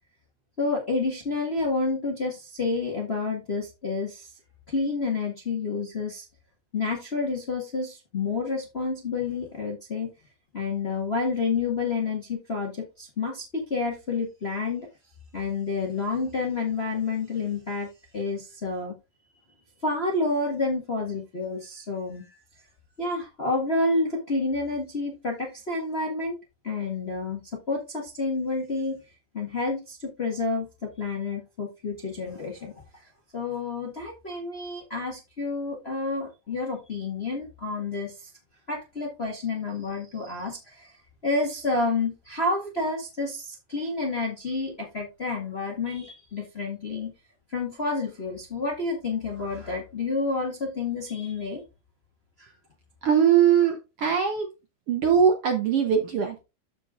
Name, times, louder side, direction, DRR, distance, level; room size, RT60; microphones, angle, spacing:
voice 1, 0.6-4.3 4.7-6.2 6.7-10.1 10.5-14.9 15.3-18.9 19.8-22.4 23.0-26.4 26.6-27.4 27.7-29.0 29.3-38.3 38.7-41.0 41.2-47.1 47.5-51.6 52.4-52.5, left 3 dB, 30° left, -1 dB, 1.2 m, -29 dB
voice 2, 53.0-54.5 54.9-56.4, right 8 dB, 65° right, 3 dB, 1.5 m, -21 dB
13.5 x 4.6 x 2.4 m, 0.26 s
omnidirectional pair, 3.6 m